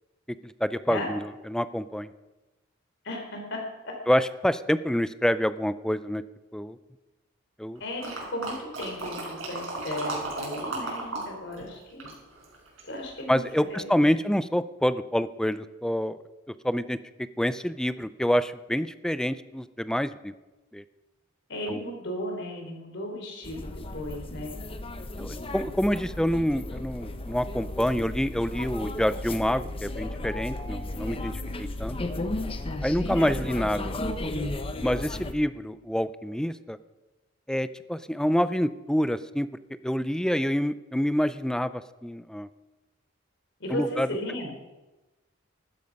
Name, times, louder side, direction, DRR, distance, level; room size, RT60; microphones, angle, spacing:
voice 1, 0.4-2.1 4.1-6.2 6.5-6.8 7.6-7.8 13.3-16.2 16.6-17.0 17.4-20.3 20.7-20.8 21.7-21.8 25.2-32.0 32.8-34.1 34.8-36.8 37.5-39.5 39.8-42.5 43.7-44.1, equal, 5° left, 14 dB, 0.4 m, -27 dB
voice 2, 3.0-4.2 7.8-12.1 12.8-13.9 14.2-14.3 21.5-24.5 33.1-33.5 43.6-44.5, left 1 dB, 60° left, 2 dB, 4.1 m, -36 dB
sound 1, 8.0-11.3 11.5-13.0 13.5-13.6, right 2 dB, 85° right, 5.7 m, -34 dB
sound 2, 23.4-35.3, left 1 dB, 30° left, 0.9 m, -34 dB
14.5 x 12.5 x 5.3 m, 1.1 s
head